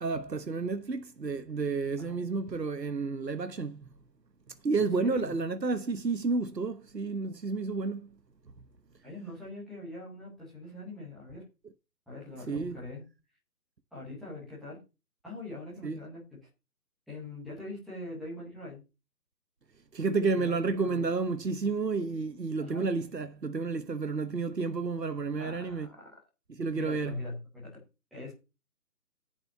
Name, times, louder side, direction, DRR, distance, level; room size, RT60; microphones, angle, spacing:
voice 1, 0.0-3.9 4.6-8.1 12.5-12.8 15.8-16.0 19.9-25.9 26.5-27.2, right 4 dB, 80° right, 1.2 m, -31 dB
voice 2, 5.0-5.3 9.0-11.4 12.1-13.0 13.9-14.8 15.2-16.4 17.1-18.8 20.3-20.5 20.8-21.0 22.6-22.9 25.4-26.1 26.7-27.8 28.1-28.3, left 2 dB, ahead, 0.9 m, -42 dB
10.5 x 5.8 x 6.7 m
figure-of-eight pair, 145°, 49 cm